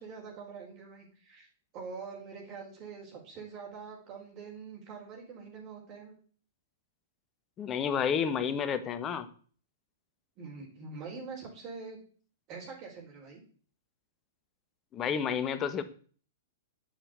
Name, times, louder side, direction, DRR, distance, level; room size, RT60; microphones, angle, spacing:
voice 1, 0.0-1.5 1.7-6.1 10.4-12.0 12.5-13.4, right 5 dB, 40° right, -1 dB, 4.8 m, -44 dB
voice 2, 7.6-9.3 14.9-15.8, left 7 dB, 25° left, 11 dB, 1.6 m, -30 dB
9.8 x 7.3 x 8.2 m, 0.42 s
hypercardioid pair, 110°, 0 cm